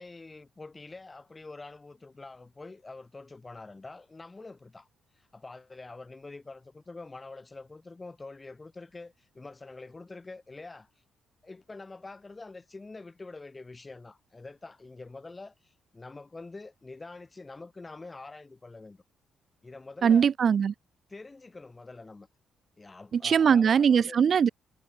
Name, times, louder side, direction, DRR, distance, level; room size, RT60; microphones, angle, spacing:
voice 1, 0.0-4.9 5.1-10.9 11.4-19.0 19.6-20.3 21.1-22.3 22.8-24.2, left 3 dB, 20° left, 4.3 m, -46 dB
voice 2, 20.0-20.7 23.2-24.5, right 7 dB, 50° right, 0.3 m, -21 dB
cardioid pair, 90°, 0 cm